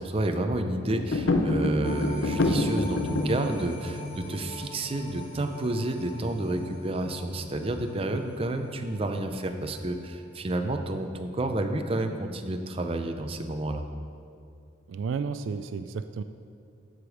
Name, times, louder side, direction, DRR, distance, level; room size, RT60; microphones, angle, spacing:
voice 1, 0.0-13.8, right 1 dB, 30° right, 6 dB, 0.6 m, -30 dB
sound 1, 0.9-3.4, left 1 dB, 80° left, 0.8 m, -26 dB
sound 2, 1.8-10.2 10.6-10.7, left 2 dB, 30° left, 1.0 m, -41 dB
voice 2, 14.9-16.2, right 5 dB, 75° right, 10 dB, 0.3 m, -32 dB
13.0 x 5.0 x 4.9 m, 2.5 s
head